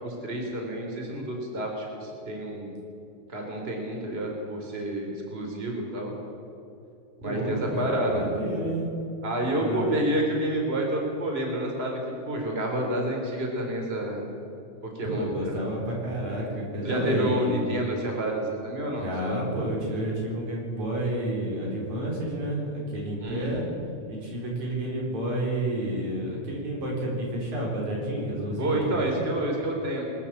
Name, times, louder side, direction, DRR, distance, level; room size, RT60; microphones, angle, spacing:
voice 1, 0.0-2.8 3.3-6.1 7.2-8.2 9.2-12.0 12.2-14.2 14.9-15.6 16.8-19.4 23.2-23.7 28.6-30.1, right 1 dB, 20° right, 1 dB, 3.8 m, -29 dB
voice 2, 7.2-8.9 9.6-10.0 15.0-17.6 19.0-23.7 24.1-29.2, right 1 dB, 75° right, -1 dB, 5.7 m, -30 dB
22.5 x 14.0 x 8.7 m, 2.7 s
omnidirectional pair, 3.3 m